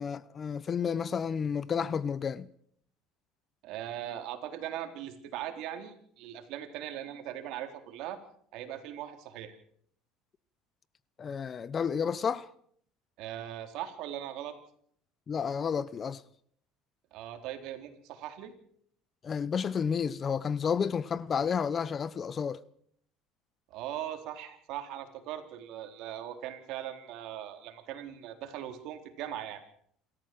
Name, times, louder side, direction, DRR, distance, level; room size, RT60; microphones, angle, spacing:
voice 1, 0.0-2.5 11.2-12.5 15.3-16.2 19.2-22.6, left 6 dB, 30° left, 0.8 m, -31 dB
voice 2, 3.6-8.2 8.5-9.6 13.2-14.6 17.1-18.5 23.7-29.6, right 11 dB, 65° right, 3.8 m, -40 dB
28.0 x 14.0 x 7.7 m
supercardioid pair, 115°, 0 cm